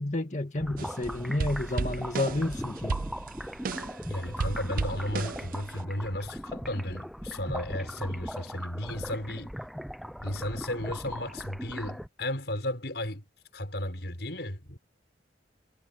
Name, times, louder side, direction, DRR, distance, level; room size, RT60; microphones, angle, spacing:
voice 1, 0.0-3.0, left 2 dB, 40° left, 2.1 m, -30 dB
sound 1, 0.6-12.1, equal, ahead, 0.7 m, -39 dB
sound 2, 0.8-1.0 1.4-4.0 4.4-5.8, right 4 dB, 50° right, 0.5 m, -33 dB
voice 2, 4.1-9.5 10.2-13.2 13.5-14.8, left 1 dB, 70° left, 5.7 m, -34 dB
head